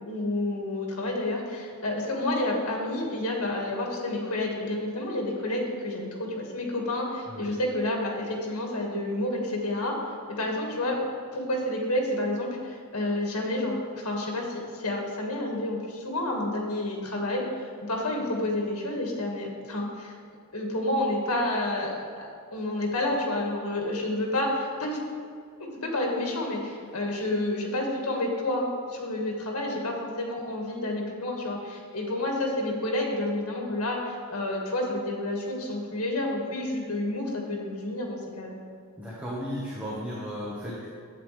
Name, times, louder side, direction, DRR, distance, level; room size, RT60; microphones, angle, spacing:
voice 1, 0.0-10.0 10.4-11.0 11.3-20.1 20.5-25.0 25.6-38.6, left 1 dB, 75° left, 0 dB, 1.9 m, -29 dB
voice 2, 7.3-7.6 39.0-40.9, equal, 5° right, -8 dB, 1.4 m, -35 dB
11.0 x 8.4 x 3.4 m, 2.2 s
head